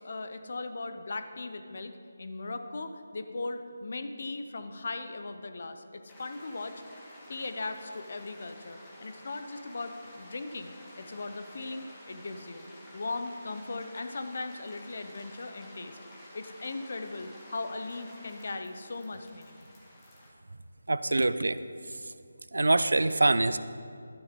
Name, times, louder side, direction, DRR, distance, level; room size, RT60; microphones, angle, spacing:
voice 1, 0.0-6.7 7.1-12.7 12.9-16.0 16.3-19.6, left 3 dB, 55° left, 8 dB, 0.8 m, -38 dB
sound 1, 6.1-20.3, left 1 dB, 15° left, 1.7 m, -51 dB
voice 2, 20.9-21.6 22.5-23.6, right 2 dB, 75° right, 14 dB, 0.4 m, -24 dB
12.0 x 9.8 x 3.7 m, 2.3 s
figure-of-eight pair, 155°, 0 cm